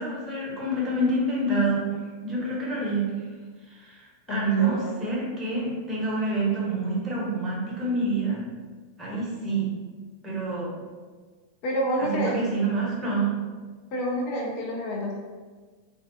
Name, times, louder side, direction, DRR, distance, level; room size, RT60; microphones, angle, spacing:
voice 1, 0.0-1.8 2.2-3.1 3.7-8.4 9.0-9.7 10.2-10.7 12.0-13.3, right 2 dB, 15° right, -6 dB, 0.8 m, -27 dB
voice 2, 4.3-5.0 11.6-12.4 13.9-15.2, equal, 45° left, -2 dB, 0.5 m, -28 dB
2.2 x 2.2 x 2.6 m, 1.4 s
figure-of-eight pair, 90°, 0 cm